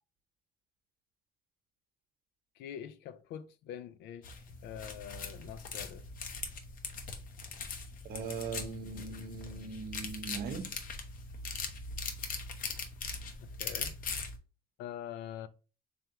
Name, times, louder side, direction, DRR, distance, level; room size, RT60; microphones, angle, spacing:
voice 1, 2.6-6.1 13.4-14.0 14.8-15.5, left 10 dB, 80° left, 0.4 m, -44 dB
sound 1, 4.2-14.4, left 4 dB, 55° left, 0.8 m, -41 dB
voice 2, 8.0-10.7, right 4 dB, 60° right, 0.8 m, -40 dB
3.5 x 3.5 x 2.8 m
cardioid pair, 110°, 17 cm